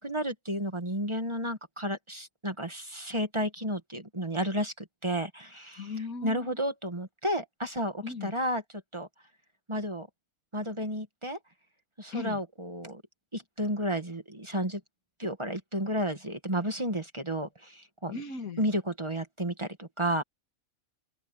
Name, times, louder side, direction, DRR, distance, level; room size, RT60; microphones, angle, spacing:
voice 1, 0.0-5.9 6.2-8.6 8.9-9.1 9.7-10.1 10.5-11.4 12.0-13.0 13.3-14.8 15.2-18.2 18.6-20.2, equal, 20° right, 1.7 m, -32 dB
voice 2, 5.8-6.7 8.0-8.3 12.1-12.4 18.1-18.6, left 4 dB, 85° left, 2.4 m, -38 dB
open air
omnidirectional pair, 1.4 m